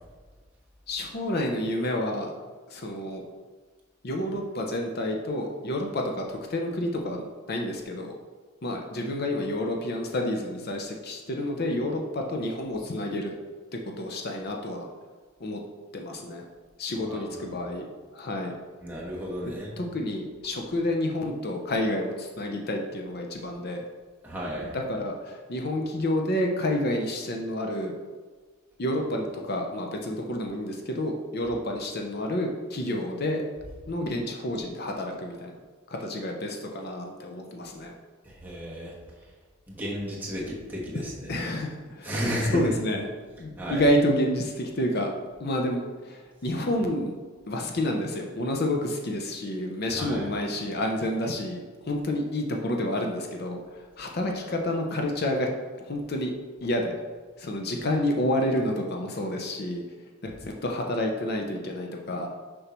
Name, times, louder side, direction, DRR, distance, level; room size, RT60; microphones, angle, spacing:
voice 1, 0.9-2.3 2.7-3.2 4.0-7.2 7.5-8.2 8.6-13.3 13.7-14.9 15.4-15.6 15.9-16.4 16.8-18.5 19.8-23.8 24.6-27.9 28.8-33.5 33.9-35.5 35.9-37.9 41.3-42.2 42.5-43.1 43.4-45.1 45.4-47.1 47.5-53.6 54.0-55.5 55.9-56.3 56.6-56.9 57.4-59.8 60.2-62.3, left 1 dB, 50° left, 2 dB, 0.7 m, -29 dB
voice 2, 17.0-17.5 18.8-19.8 24.2-24.7 38.2-38.9 39.7-41.3 42.0-42.7 43.6-43.8 49.9-50.3, equal, 10° right, -5 dB, 1.3 m, -33 dB
6.6 x 5.4 x 3.1 m, 1.4 s
head